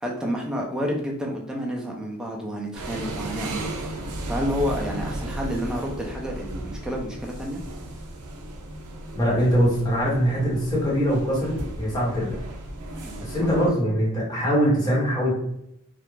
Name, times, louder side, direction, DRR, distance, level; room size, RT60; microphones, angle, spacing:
voice 1, 0.0-7.6 13.0-13.5, equal, 5° right, -1 dB, 0.4 m, -30 dB
sound 1, 2.7-13.7, right 1 dB, 90° right, 0.5 m, -35 dB
voice 2, 9.1-12.4 13.2-15.3, equal, 20° left, -5 dB, 0.9 m, -22 dB
2.3 x 2.0 x 3.0 m, 0.78 s
head